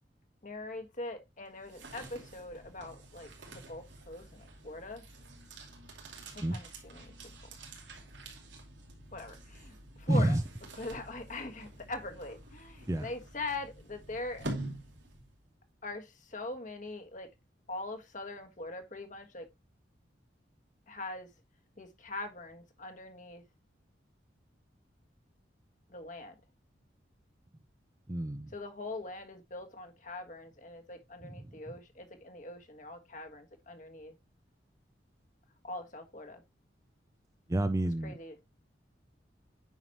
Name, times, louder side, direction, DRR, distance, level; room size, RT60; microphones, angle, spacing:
voice 1, 0.4-5.0 6.3-7.1 9.1-10.4 10.8-14.5 15.8-17.3 17.7-19.5 20.9-21.3 21.8-23.4 25.9-26.3 28.5-34.2 35.6-36.4 38.0-38.4, left 2 dB, 45° left, 1.5 m, -42 dB
sound 1, 1.5-15.5, right 2 dB, 75° right, 2.8 m, -47 dB
voice 2, 10.1-10.4 12.9-13.1 28.1-28.5 31.2-31.5 37.5-38.2, right 1 dB, 15° right, 0.5 m, -29 dB
9.2 x 5.9 x 2.9 m
head